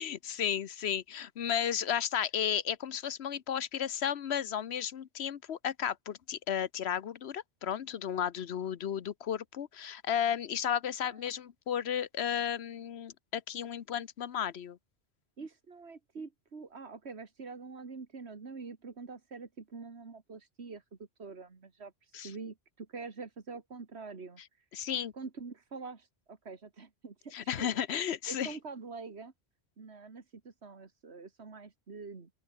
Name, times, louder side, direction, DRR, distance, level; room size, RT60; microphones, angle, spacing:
voice 1, 0.0-14.8 22.1-22.3 24.7-25.1 27.3-28.6, left 9 dB, 85° left, 1.1 m, -33 dB
voice 2, 15.4-20.8 21.2-24.7 25.1-27.7 28.3-29.3 29.8-32.3, right 4 dB, 85° right, 2.3 m, -45 dB
open air
omnidirectional pair, 1.1 m